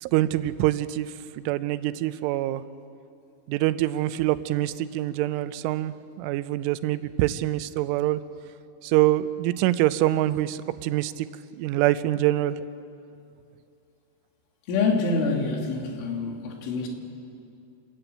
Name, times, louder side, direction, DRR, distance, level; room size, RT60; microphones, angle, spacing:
voice 1, 0.0-2.6 3.5-8.2 8.8-11.3 11.6-12.6, right 15 dB, 90° right, 14 dB, 3.2 m, -25 dB
voice 2, 14.7-16.9, left 4 dB, 80° left, 2 dB, 4.7 m, -26 dB
28.5 x 13.5 x 9.1 m, 2.6 s
omnidirectional pair, 5.5 m